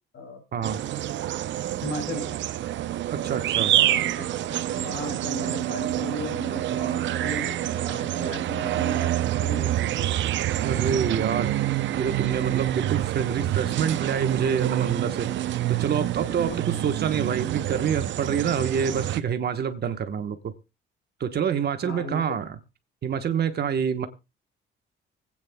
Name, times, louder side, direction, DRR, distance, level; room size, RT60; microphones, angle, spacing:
sound 1, 0.6-19.2, right 13 dB, 70° right, 0.6 m, -27 dB
voice 1, 1.8-2.4 3.7-4.3 4.6-10.1 16.5-16.8 21.8-22.2, left 1 dB, 60° left, 2 dB, 5.7 m, -36 dB
voice 2, 3.1-3.7 10.6-11.5 11.9-15.3 15.7-16.5 16.8-20.5 21.2-22.6 23.0-24.1, right 7 dB, 55° right, 8 dB, 1.1 m, -27 dB
25.0 x 8.8 x 2.2 m, 0.27 s
cardioid pair, 90°, 20 cm